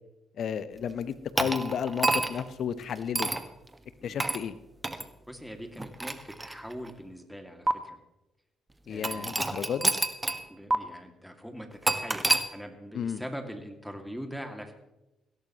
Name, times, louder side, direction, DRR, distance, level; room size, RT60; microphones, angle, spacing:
voice 1, 0.4-3.3 4.0-4.6 8.9-9.9 12.9-13.2, left 8 dB, 60° left, 14 dB, 0.9 m, -32 dB
sound 1, 1.4-2.5 3.1-3.5 4.2-4.4 4.8-5.0 5.8-6.9 7.7-7.8 9.0-10.4 10.7-10.8 11.9-12.5, right 2 dB, 20° right, 1.5 m, -28 dB
voice 2, 5.3-8.0 8.9-9.5 10.5-12.3 12.5-14.7, equal, ahead, 4 dB, 2.4 m, -42 dB
21.0 x 17.0 x 3.1 m, 0.98 s
hypercardioid pair, 50°, 0 cm